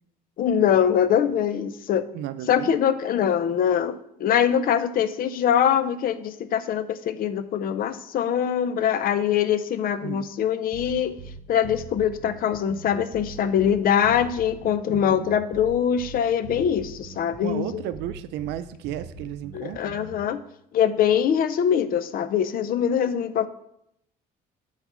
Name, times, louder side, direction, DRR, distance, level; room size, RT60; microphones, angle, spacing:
voice 1, 0.4-2.1 2.5-11.2 11.5-17.8 19.5-20.4 20.7-23.5, left 9 dB, 60° left, 13 dB, 0.6 m, -23 dB
voice 2, 2.1-2.7 10.0-10.2 14.9-15.3 17.4-20.0, right 11 dB, 90° right, 12 dB, 0.5 m, -33 dB
sound 1, 10.7-20.3, right 5 dB, 60° right, 0.9 m, -42 dB
7.9 x 4.1 x 6.1 m, 0.76 s
cardioid pair, 110°, 17 cm